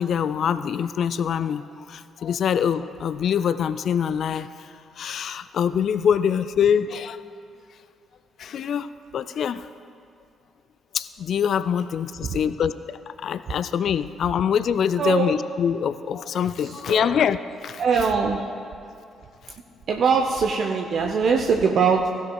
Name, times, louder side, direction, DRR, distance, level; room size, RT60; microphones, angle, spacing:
voice 1, 0.0-4.7 5.0-7.2 8.4-9.7 10.9-18.0, left 8 dB, 55° left, 14 dB, 0.3 m, -24 dB
voice 2, 15.0-15.3 16.9-17.1 17.8-18.5 19.9-22.1, right 5 dB, 55° right, 2 dB, 0.6 m, -22 dB
16.0 x 10.0 x 2.3 m, 2.6 s
figure-of-eight pair, 45°, 0 cm